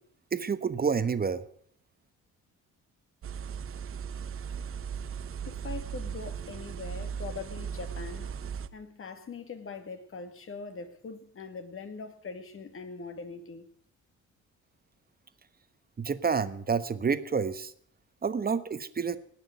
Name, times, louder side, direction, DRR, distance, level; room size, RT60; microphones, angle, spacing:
voice 1, 0.3-1.4 16.0-17.7 18.2-19.2, right 5 dB, 30° right, 1.2 m, -29 dB
sound 1, 3.2-8.7, right 7 dB, 45° right, 0.8 m, -37 dB
voice 2, 5.5-8.3 8.7-13.7, left 4 dB, 45° left, 2.2 m, -42 dB
18.5 x 6.4 x 9.3 m
cardioid pair, 90°, 30 cm